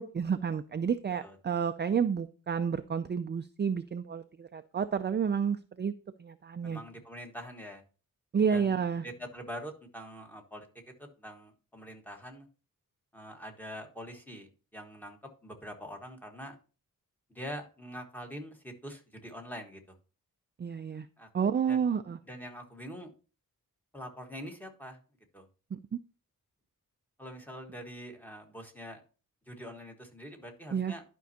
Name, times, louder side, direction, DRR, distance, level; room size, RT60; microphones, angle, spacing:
voice 1, 0.0-5.9 6.2-6.8 8.3-9.0 20.6-21.1 21.3-22.2 25.7-26.0 30.7-30.9, right 7 dB, 35° right, 9 dB, 0.4 m, -30 dB
voice 2, 6.6-7.8 8.5-8.8 9.0-10.7 11.0-12.5 13.1-16.6 17.3-19.8 21.2-21.3 21.7-21.9 22.2-23.1 23.9-25.0 25.3-25.5 27.2-29.0 29.5-31.0, equal, 5° left, 3 dB, 1.4 m, -44 dB
11.5 x 5.4 x 2.8 m, 0.35 s
wide cardioid pair, 130°, 33 cm